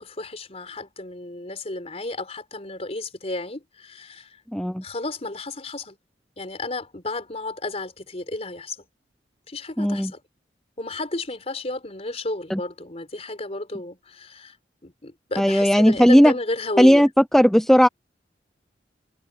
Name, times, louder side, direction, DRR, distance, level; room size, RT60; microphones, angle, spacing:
voice 1, 0.0-4.4 4.8-6.0 6.4-8.8 9.5-10.2 10.8-14.6 14.8-17.1, left 2 dB, 35° left, 4.3 m, -32 dB
voice 2, 4.5-4.8 9.8-10.1 12.5-12.6 15.4-16.3 16.8-17.1 17.3-17.9, equal, 5° left, 0.7 m, -16 dB
head